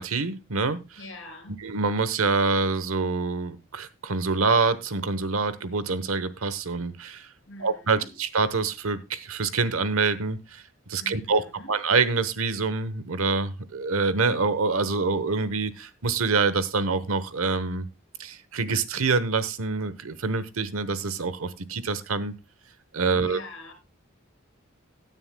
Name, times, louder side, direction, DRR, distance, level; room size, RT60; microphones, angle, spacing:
voice 1, 0.0-0.8 1.6-7.3 7.6-10.6 10.9-11.4 11.7-17.9 18.2-22.3 22.9-23.4, right 4 dB, 90° right, 15 dB, 1.1 m, -26 dB
voice 2, 1.0-1.6 7.5-8.2 11.0-11.8 23.1-23.7, left 2 dB, 65° left, 7 dB, 3.2 m, -44 dB
16.5 x 9.6 x 2.2 m, 0.25 s
head